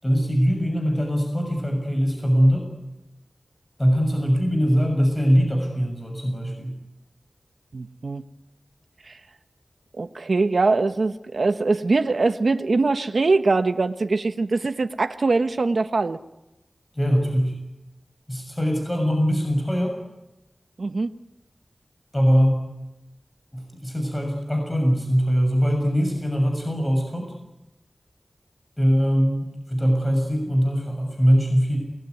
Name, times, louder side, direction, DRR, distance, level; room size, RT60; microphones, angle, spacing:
voice 1, 0.0-2.7 3.8-6.8 16.9-17.5 18.3-20.0 22.1-22.6 23.5-27.3 28.8-31.8, equal, 15° left, 3 dB, 6.7 m, -22 dB
voice 2, 7.7-8.2 9.0-9.2 9.9-16.2 20.8-21.1, right 3 dB, 75° right, 8 dB, 1.1 m, -22 dB
28.5 x 20.0 x 9.6 m, 0.95 s
wide cardioid pair, 55°, 0 cm